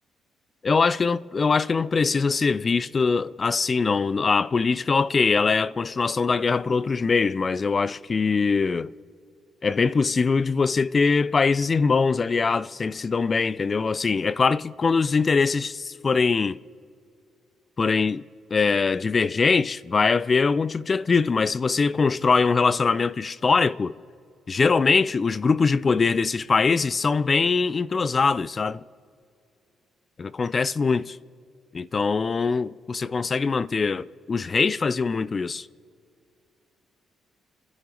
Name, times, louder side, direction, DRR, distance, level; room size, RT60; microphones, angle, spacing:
voice 1, 0.6-8.9 9.6-16.6 17.8-18.2 18.5-24.0 24.5-28.8 30.2-31.2 31.7-35.7, left 4 dB, 35° left, 0.4 m, -22 dB
26.5 x 10.5 x 3.9 m
cardioid pair, 90°, 0 cm